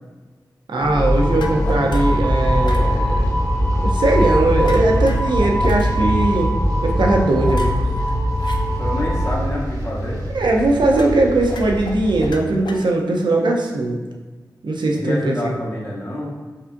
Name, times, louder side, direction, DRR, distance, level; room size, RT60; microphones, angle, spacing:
voice 1, 0.7-3.3 3.8-6.5 6.8-7.7 10.3-14.0 14.6-15.4, right 2 dB, 85° right, 1 dB, 0.6 m, -19 dB
sound 1, 0.8-9.3, equal, 15° left, 0.5 m, -20 dB
sound 2, 0.9-12.3, right 1 dB, 50° right, 0.7 m, -30 dB
sound 3, 1.3-2.2 2.6-2.9 4.6-5.9 7.4-8.6 10.9-11.2 11.5-13.2, left 3 dB, 75° left, 0.4 m, -36 dB
voice 2, 8.8-10.2 14.9-16.4, left 1 dB, 35° left, -5 dB, 1.0 m, -27 dB
5.4 x 2.4 x 2.6 m, 1.3 s
wide cardioid pair, 75°, 8 cm